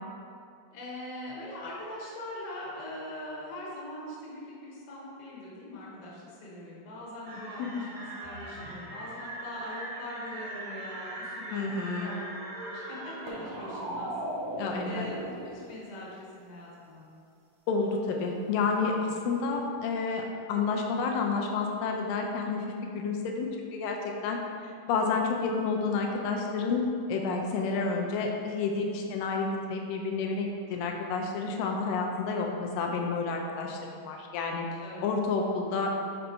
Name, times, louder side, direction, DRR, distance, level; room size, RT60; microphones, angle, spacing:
voice 1, 0.7-12.2 12.6-14.1 14.8-17.0 28.8-29.1 31.8-32.2 34.8-35.0, left 1 dB, 55° left, -5 dB, 2.0 m, -42 dB
sound 1, 7.2-15.6, right 1 dB, 90° right, 2.7 m, -39 dB
voice 2, 11.5-12.1 14.5-15.1 17.7-20.2 20.5-24.4 24.6-34.7 35.0-35.9, left 4 dB, 85° left, 1 dB, 2.4 m, -30 dB
6.5 x 4.0 x 4.5 m, 2.3 s
omnidirectional pair, 3.8 m